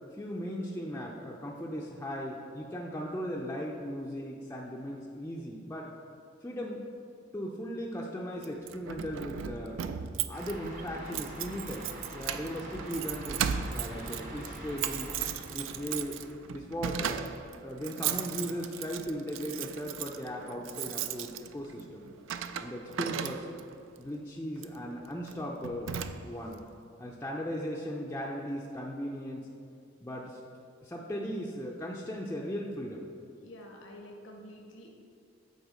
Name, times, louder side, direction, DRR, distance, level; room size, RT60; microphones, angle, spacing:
voice 1, 0.1-6.0 6.4-6.9 7.3-9.8 10.3-11.8 12.1-15.1 15.5-16.2 16.5-17.3 17.6-22.1 22.6-23.5 24.0-26.0 26.3-26.6 27.0-29.5 30.0-30.4 30.8-33.1, equal, 10° left, -3 dB, 0.4 m, -37 dB
Keys jangling, 8.4-23.8 24.6-24.8 25.3-25.4 25.6-26.5, right 8 dB, 70° right, 0.3 m, -37 dB
sound 1, 10.3-16.4, right 1 dB, 45° right, 0.9 m, -44 dB
voice 2, 33.4-34.9, left 1 dB, 70° left, 0 dB, 0.7 m, -48 dB
8.0 x 4.1 x 4.9 m, 2.4 s
head